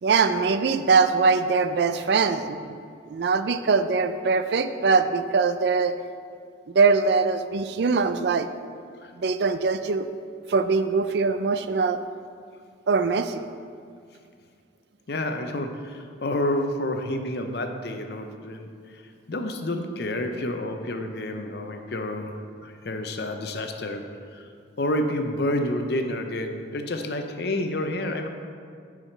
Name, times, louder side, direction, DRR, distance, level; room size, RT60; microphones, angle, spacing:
voice 1, 0.0-2.7 3.1-5.9 6.7-8.5 9.2-10.1 10.5-12.0 12.9-13.5, right 4 dB, 60° right, 10 dB, 0.4 m, -22 dB
voice 2, 15.1-18.7 19.3-22.3 22.6-24.0 24.3-24.5 24.8-28.3, left 1 dB, 55° left, 5 dB, 0.6 m, -29 dB
9.6 x 4.9 x 4.5 m, 2.2 s
head